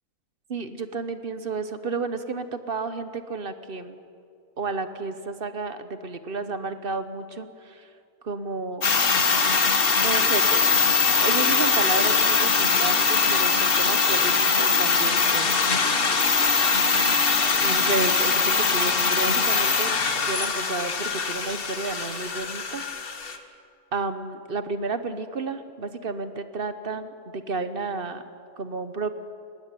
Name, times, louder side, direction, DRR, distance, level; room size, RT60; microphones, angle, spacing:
voice 1, 0.5-4.0 4.6-7.9 8.2-8.9 10.0-10.8 11.1-15.5 17.6-22.8 23.2-23.5 23.9-28.2 28.6-29.1, right 3 dB, 40° right, 10 dB, 1.1 m, -31 dB
sound 1, 8.8-23.4, left 4 dB, 40° left, 1.4 m, -22 dB
20.0 x 16.0 x 9.7 m, 2.4 s
omnidirectional pair, 1.6 m